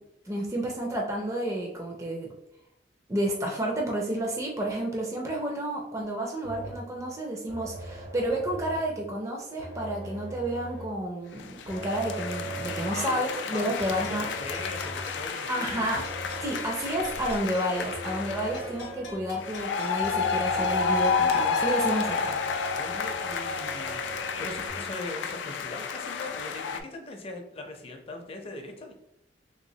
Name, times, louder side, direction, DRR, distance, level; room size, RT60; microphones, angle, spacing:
voice 1, 0.3-2.3 3.1-14.3 15.5-16.0 16.4-22.4, right 1 dB, 15° right, -1 dB, 0.4 m, -30 dB
sound 1, 6.4-7.0 7.5-9.0 9.6-11.0 11.7-13.1 13.8-15.2 15.9-17.4 17.9-19.3 20.0-24.7, right 2 dB, 70° right, 0.9 m, -41 dB
sound 2, 11.4-18.7 19.4-26.8, left 5 dB, 90° left, 0.3 m, -31 dB
voice 2, 12.8-13.2 13.5-15.9 22.7-28.9, left 2 dB, 35° left, 3 dB, 0.5 m, -40 dB
sound 3, 13.0-22.0, left 1 dB, 70° left, 0.7 m, -45 dB
3.3 x 3.0 x 2.7 m, 0.79 s
head